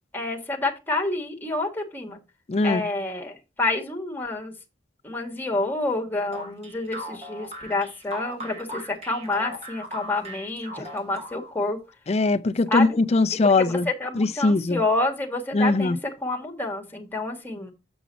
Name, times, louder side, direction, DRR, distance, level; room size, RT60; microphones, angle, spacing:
voice 1, 0.1-2.2 2.6-4.5 5.0-11.8 12.7-13.0 13.6-17.7, left 2 dB, 10° left, 1.5 m, -28 dB
voice 2, 2.5-2.8 12.1-13.9 14.2-14.8 15.5-16.0, left 3 dB, 35° left, 0.4 m, -21 dB
sound 1, 6.3-11.6, equal, 35° right, 2.4 m, -38 dB
7.2 x 6.0 x 3.9 m
head